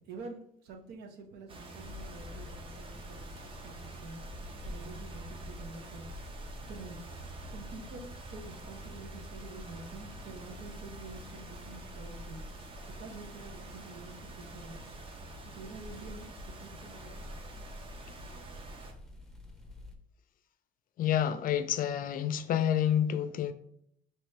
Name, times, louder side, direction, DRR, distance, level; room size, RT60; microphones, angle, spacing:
voice 1, 0.1-4.2 4.6-6.0 6.7-7.0 7.5-12.4 13.0-14.8 15.5-17.4, right 3 dB, 75° right, 0.9 m, -48 dB
sound 1, 1.5-18.9, right 2 dB, 30° right, 0.7 m, -48 dB
sound 2, 1.8-20.0, left 1 dB, 5° left, 0.7 m, -48 dB
voice 2, 21.0-23.5, left 10 dB, 55° left, 0.4 m, -28 dB
4.8 x 3.0 x 3.3 m
cardioid pair, 110°, 17 cm